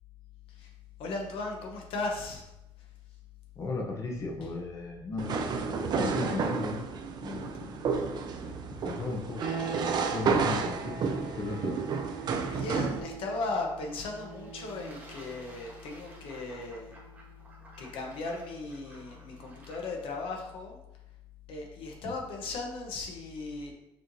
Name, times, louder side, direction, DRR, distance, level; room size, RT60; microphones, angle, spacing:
voice 1, 1.0-2.5 12.4-16.9 17.8-20.8 21.5-23.7, left 3 dB, 70° left, 1 dB, 0.9 m, -37 dB
voice 2, 3.6-5.4 6.0-6.8 7.2-7.9 8.4-9.5 10.1-11.0 11.4-11.8 22.0-22.1, left 3 dB, 35° left, -1 dB, 0.7 m, -36 dB
sound 1, 5.2-13.0, right 5 dB, 50° right, 0.5 m, -31 dB
sound 2, 9.4-19.9, right 5 dB, 85° right, 0.9 m, -44 dB
Fowl / Bird / Water, 13.7-20.2, right 1 dB, 20° right, 1.3 m, -54 dB
6.2 x 3.1 x 2.7 m, 0.89 s
cardioid pair, 120°, 9 cm